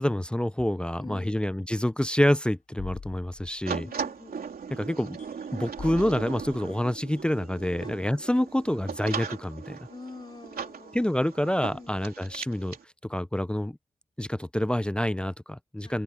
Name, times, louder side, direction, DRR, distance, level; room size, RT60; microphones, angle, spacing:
voice 1, 0.0-3.9 4.8-5.2 5.5-9.8 10.9-12.8 13.1-13.8 14.2-16.0, left 1 dB, 5° left, 0.4 m, -27 dB
voice 2, 1.0-1.6 3.8-4.4 7.8-8.0 9.9-11.0 11.7-12.0 15.8-16.0, left 3 dB, 30° left, 5.1 m, -46 dB
sound 1, 1.6-1.7 2.8-4.4 5.2-5.5 5.8-7.9, left 5 dB, 55° left, 5.4 m, -44 dB
sound 2, 3.6-12.8, right 6 dB, 70° right, 3.4 m, -38 dB
wide cardioid pair, 115°, 16 cm